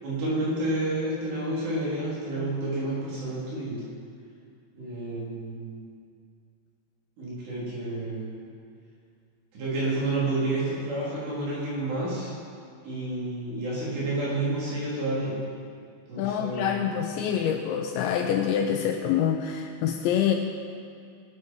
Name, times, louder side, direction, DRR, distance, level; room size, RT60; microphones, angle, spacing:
voice 1, 0.0-3.9 4.8-5.8 7.2-8.4 9.5-12.3 12.8-15.4 16.1-16.9, right 2 dB, 60° right, -7 dB, 6.0 m, -30 dB
voice 2, 16.2-20.4, left 9 dB, 80° left, 3 dB, 2.8 m, -26 dB
19.5 x 12.5 x 4.8 m, 2.3 s
omnidirectional pair, 5.7 m